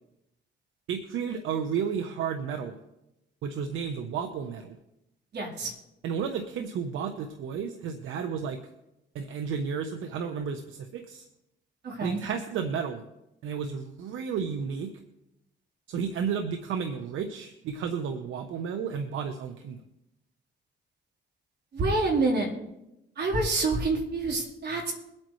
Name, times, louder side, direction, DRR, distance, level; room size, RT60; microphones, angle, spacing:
voice 1, 0.9-2.8 3.4-4.8 6.0-8.6 9.1-11.3 12.0-13.0 13.4-14.9 15.9-19.8, right 6 dB, 80° right, 6 dB, 1.0 m, -32 dB
voice 2, 5.3-5.7 11.8-12.2 21.7-22.5 23.2-24.9, right 3 dB, 55° right, -2 dB, 4.0 m, -27 dB
22.5 x 8.7 x 3.2 m, 0.88 s
cardioid pair, 90°, 20 cm